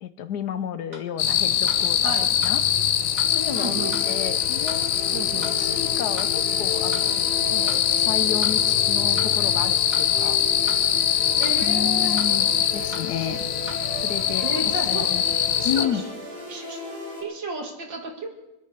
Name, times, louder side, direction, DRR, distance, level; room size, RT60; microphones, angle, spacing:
voice 1, 0.0-2.1 2.4-2.6 3.3-3.8 4.0-10.7 11.6-13.5 14.0-15.2 15.6-16.0, left 9 dB, 70° left, 12 dB, 1.2 m, -32 dB
sound 1, 0.9-1.1 1.7-1.8 2.4-2.6 3.2-3.3 3.9-4.1 4.7-4.8 5.4-5.6 6.2-6.3 6.9-7.1 7.7-7.8 8.4-8.6 9.2-9.3 9.9-10.1 10.7-10.8 11.4-11.6 12.2-12.3 12.9-13.1 13.7-13.8, right 1 dB, 45° right, 3.0 m, -38 dB
sound 2, 1.2-15.9, left 10 dB, 85° left, 1.5 m, -23 dB
sound 3, 3.2-17.2, left 2 dB, 30° left, 4.0 m, -35 dB
voice 2, 3.5-4.0 5.1-5.5 11.4-12.2 14.4-15.1 15.6-16.0 16.5-16.8 17.2-18.3, right 2 dB, 80° right, 2 dB, 2.9 m, -32 dB
24.5 x 8.6 x 6.6 m, 0.98 s
omnidirectional pair, 2.0 m